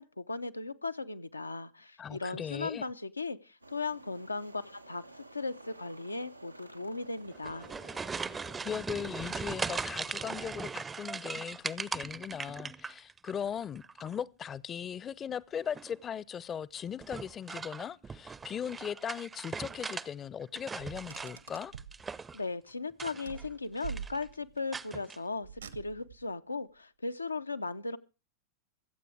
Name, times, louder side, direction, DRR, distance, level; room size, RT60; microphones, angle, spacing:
voice 1, 0.0-7.7 22.3-28.0, left 3 dB, 80° left, 0.8 m, -37 dB
voice 2, 2.0-2.9 8.1-21.7, left 8 dB, 25° left, 0.7 m, -39 dB
sound 1, 3.6-10.5, right 2 dB, 85° right, 0.7 m, -53 dB
sound 2, 7.3-13.3 13.6-14.2 15.6-16.0 17.0-20.1 20.4-22.4 22.9-23.5 23.8-24.2 24.7-25.2, right 5 dB, 15° right, 0.6 m, -39 dB
Car, 20.8-22.0 23.2-24.6 25.4-26.3, right 7 dB, 70° right, 1.3 m, -44 dB
23.5 x 8.3 x 4.8 m
figure-of-eight pair, 90°, 0 cm